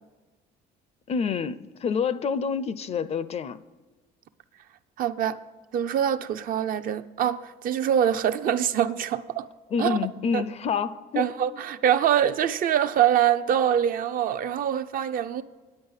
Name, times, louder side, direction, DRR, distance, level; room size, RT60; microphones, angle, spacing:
voice 1, 1.1-3.6 9.7-11.3, left 6 dB, 40° left, 0.4 m, -27 dB
voice 2, 5.0-5.4 5.7-9.5 9.8-10.0 10.3-10.4 11.2-15.4, right 9 dB, 55° right, 0.5 m, -24 dB
9.7 x 8.7 x 5.6 m
cardioid pair, 110°, 17 cm